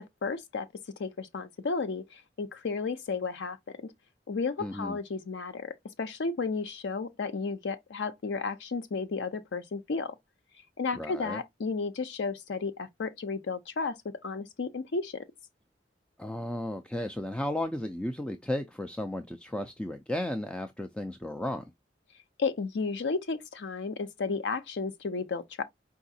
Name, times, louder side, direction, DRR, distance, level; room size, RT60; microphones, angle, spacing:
voice 1, 0.2-0.7 1.0-3.9 4.3-10.1 10.8-15.3 22.4-25.6, left 4 dB, 90° left, 0.5 m, -33 dB
voice 2, 4.6-5.0 11.0-11.4 16.2-21.6, left 1 dB, 5° left, 0.3 m, -34 dB
4.8 x 3.4 x 2.6 m
head